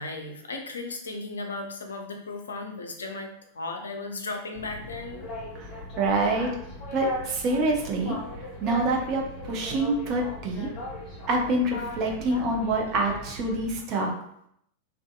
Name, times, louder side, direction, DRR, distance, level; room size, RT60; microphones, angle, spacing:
voice 1, 0.0-5.3, left 3 dB, 70° left, 3 dB, 0.4 m, -36 dB
Boat Water vehicle, 4.5-13.8, left 1 dB, 35° left, 0.8 m, -38 dB
voice 2, 6.0-6.5 6.9-8.2 8.6-10.7 11.3-14.1, right 2 dB, 40° right, 1 dB, 0.6 m, -26 dB
2.6 x 2.3 x 2.3 m, 0.72 s
figure-of-eight pair, 90°, 0 cm